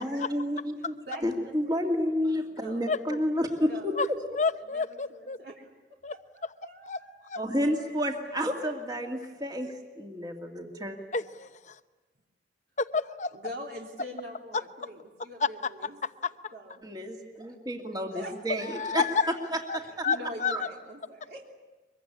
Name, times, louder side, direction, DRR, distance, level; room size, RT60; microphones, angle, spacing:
voice 1, 0.0-0.9 1.2-3.9 7.4-11.0 16.8-19.1 19.5-20.1 20.5-20.6, equal, 20° right, 2 dB, 2.4 m, -30 dB
voice 2, 1.0-2.3 2.6-2.9 3.7-4.0 4.7-5.7 6.1-7.4 8.7-8.8 13.3-16.0 16.5-16.8 18.1-18.3 20.1-21.5, equal, 60° right, -1 dB, 3.3 m, -43 dB
voice 3, 4.4-5.4 6.0-6.1 6.8-7.0 7.3-7.4 11.1-11.7 12.8-13.3 15.4-15.5 16.2-16.3 18.7-19.3 19.7-19.8 20.0-20.5, left 5 dB, 40° left, 11 dB, 0.9 m, -29 dB
24.0 x 23.5 x 9.9 m, 1.2 s
head